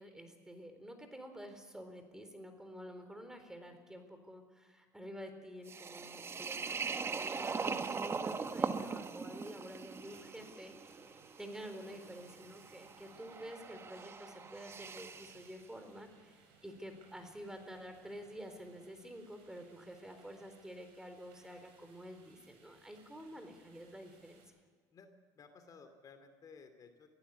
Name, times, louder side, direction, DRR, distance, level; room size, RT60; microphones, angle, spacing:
voice 1, 0.0-11.0 11.4-24.4, equal, 5° right, 7 dB, 3.9 m, -49 dB
sound 1, 5.7-15.5, right 5 dB, 30° right, 1.2 m, -41 dB
sound 2, 9.8-24.5, right 5 dB, 70° right, 7.3 m, -66 dB
voice 2, 24.9-27.1, left 5 dB, 45° left, 7 dB, 2.6 m, -57 dB
23.0 x 15.5 x 8.4 m, 1.5 s
supercardioid pair, 85°, 9 cm